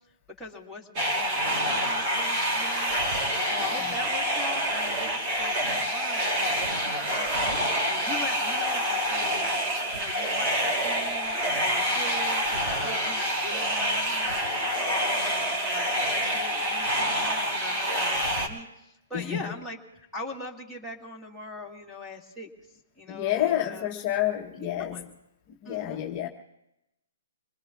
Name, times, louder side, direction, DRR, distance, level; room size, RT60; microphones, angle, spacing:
voice 1, 0.4-22.5 23.0-23.9 24.8-25.0 25.7-26.0, left 2 dB, 5° right, 2.0 m, -41 dB
sound 1, 1.0-18.5, equal, 30° right, 2.8 m, -27 dB
voice 2, 3.6-3.9 19.1-19.5 23.1-25.0 25.5-26.3, left 12 dB, 30° left, 1.0 m, -29 dB
27.0 x 20.5 x 2.4 m
hypercardioid pair, 155°, 0 cm